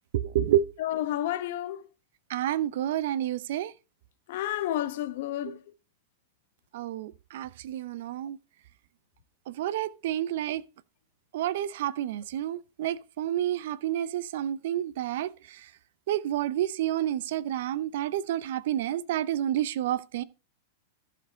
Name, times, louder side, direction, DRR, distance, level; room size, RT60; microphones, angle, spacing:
voice 1, 0.1-0.6 2.3-3.7 5.4-5.6 6.7-8.4 9.5-10.6 11.3-15.7 16.1-20.2, right 12 dB, 65° right, 0.6 m, -29 dB
voice 2, 0.8-1.8 4.3-5.6, left 12 dB, 60° left, 1.0 m, -30 dB
14.5 x 5.2 x 3.4 m
hypercardioid pair, 100°, 0 cm